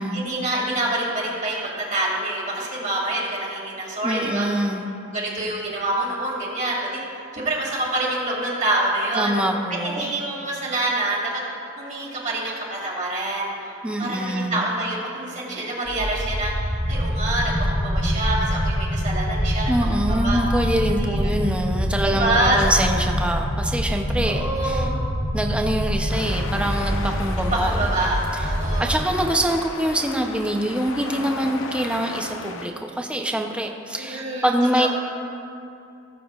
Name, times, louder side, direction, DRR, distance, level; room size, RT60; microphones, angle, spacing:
voice 1, 0.1-4.5 5.1-9.3 9.8-11.3 11.8-20.4 21.0-21.3 22.0-22.6 24.2-25.0 27.5-29.0 34.0-34.9, right 2 dB, 40° right, -4 dB, 2.2 m, -26 dB
voice 2, 4.0-4.9 9.1-10.1 13.8-14.7 19.7-24.9 25.3-27.8 28.8-34.9, right 1 dB, 5° right, 2 dB, 0.6 m, -24 dB
sound 1, 15.8-29.1, equal, 20° left, 1.7 m, -25 dB
sound 2, 26.1-32.7, left 3 dB, 75° left, 0.7 m, -35 dB
18.5 x 7.0 x 2.4 m, 2.7 s
head